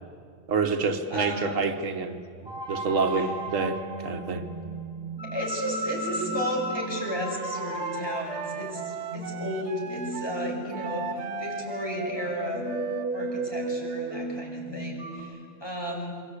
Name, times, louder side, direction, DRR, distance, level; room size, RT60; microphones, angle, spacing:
voice 1, 0.5-2.2 2.7-4.5, right 4 dB, 90° right, 7 dB, 1.7 m, -27 dB
voice 2, 1.1-1.5 3.1-3.3 5.2-12.7 13.1-16.1, equal, 20° left, -1 dB, 5.6 m, -34 dB
sound 1, 2.4-15.2, right 1 dB, 5° right, 4.9 m, -35 dB
Wind instrument woodwind instrument, 6.8-10.4 10.7-14.5, right 8 dB, 65° right, 1.1 m, -38 dB
28.0 x 22.5 x 8.4 m, 2.2 s
omnidirectional pair, 1.3 m